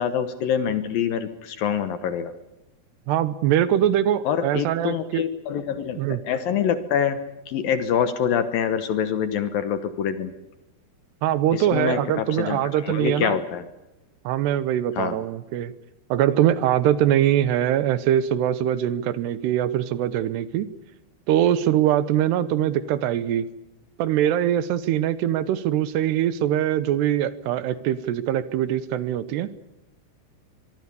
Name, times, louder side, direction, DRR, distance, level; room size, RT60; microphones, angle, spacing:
voice 1, 0.0-2.3 4.2-7.2 7.5-10.3 11.5-13.7 15.0-15.2, left 8 dB, 65° left, 11 dB, 2.4 m, -25 dB
voice 2, 3.1-5.2 6.0-6.2 11.2-13.3 14.2-15.7 16.1-20.7 21.3-23.4 24.0-29.5, right 11 dB, 75° right, 15 dB, 2.9 m, -22 dB
24.0 x 23.0 x 6.9 m, 0.98 s
omnidirectional pair, 5.1 m